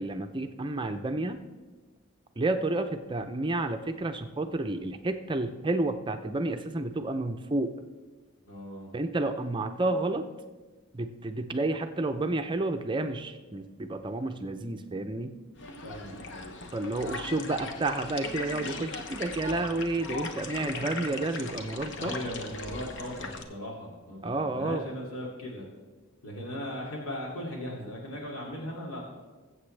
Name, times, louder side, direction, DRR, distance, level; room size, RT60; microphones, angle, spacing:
voice 1, 0.0-1.4 2.4-7.7 8.9-10.3 10.9-15.3 16.7-22.1 24.2-24.8, right 2 dB, 20° right, 7 dB, 0.5 m, -30 dB
voice 2, 8.5-8.9 15.8-16.6 22.0-25.7 26.2-29.0, equal, 85° left, -3 dB, 2.6 m, -38 dB
sound 1, 15.6-23.4, left 3 dB, 55° left, 1.0 m, -38 dB
21.0 x 7.9 x 3.3 m, 1.3 s
head